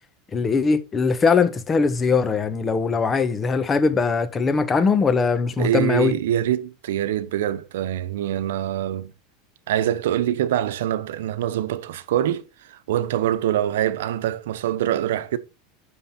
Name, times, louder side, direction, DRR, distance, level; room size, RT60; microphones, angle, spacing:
voice 1, 0.3-6.1, left 4 dB, 20° left, 1.2 m, -21 dB
voice 2, 5.6-9.1 9.7-15.4, right 11 dB, 85° right, 0.9 m, -24 dB
9.4 x 6.3 x 4.3 m
supercardioid pair, 130°, 0 cm